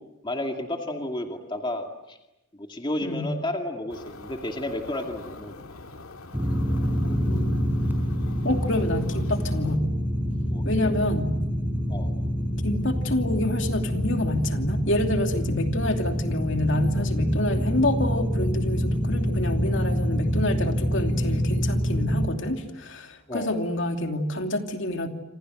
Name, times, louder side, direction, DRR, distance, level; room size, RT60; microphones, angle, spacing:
voice 1, 0.2-2.2 2.5-5.6 10.5-10.6 11.9-12.1 23.3-23.6, left 1 dB, 20° left, 4 dB, 2.4 m, -32 dB
voice 2, 3.0-3.3 7.0-7.8 8.4-9.9 10.6-11.4 12.6-25.1, left 1 dB, 60° left, 5 dB, 2.8 m, -27 dB
sound 1, 3.9-9.8, left 2 dB, 85° left, 2.2 m, -43 dB
sound 2, 6.3-22.3, equal, 10° right, 5.4 m, -26 dB
28.0 x 27.5 x 7.8 m, 0.95 s
head